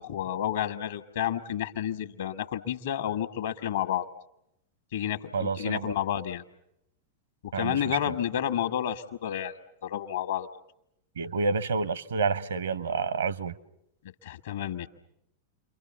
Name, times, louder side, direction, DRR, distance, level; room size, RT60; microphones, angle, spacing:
voice 1, 0.0-4.1 4.9-6.4 7.4-9.5 9.8-10.5 14.0-14.9, left 10 dB, 60° left, 1.4 m, -30 dB
voice 2, 5.3-5.9 7.5-8.1 11.2-13.6, right 4 dB, 70° right, 1.0 m, -29 dB
29.5 x 23.5 x 7.2 m
figure-of-eight pair, 90°, 0 cm